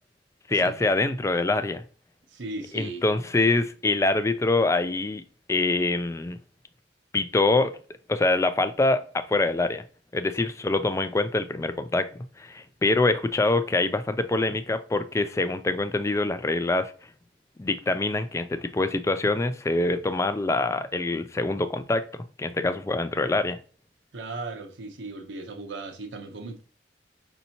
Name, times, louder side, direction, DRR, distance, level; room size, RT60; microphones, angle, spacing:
voice 1, 0.5-1.8 2.7-5.2 5.5-6.4 7.1-7.7 8.1-9.8 10.1-16.9 17.6-23.6, left 2 dB, 15° left, 0.3 m, -25 dB
voice 2, 2.3-3.0 24.1-26.6, right 3 dB, 80° right, 0.8 m, -37 dB
5.4 x 2.7 x 2.8 m
head